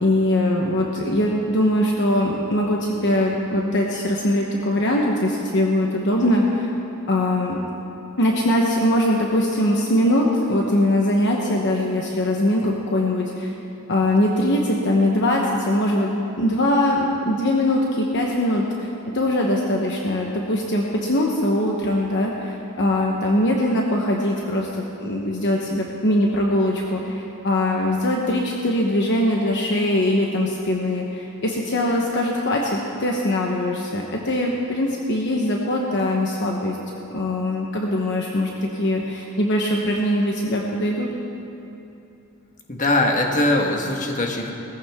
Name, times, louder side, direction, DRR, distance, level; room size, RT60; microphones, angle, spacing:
voice 1, 0.0-6.7 7.1-7.6 8.2-13.5 13.9-18.9 19.1-41.1, left 1 dB, 55° left, -1 dB, 1.1 m, -22 dB
voice 2, 42.7-44.5, left 1 dB, 35° left, 1 dB, 1.5 m, -21 dB
20.0 x 15.0 x 3.7 m, 2.9 s
head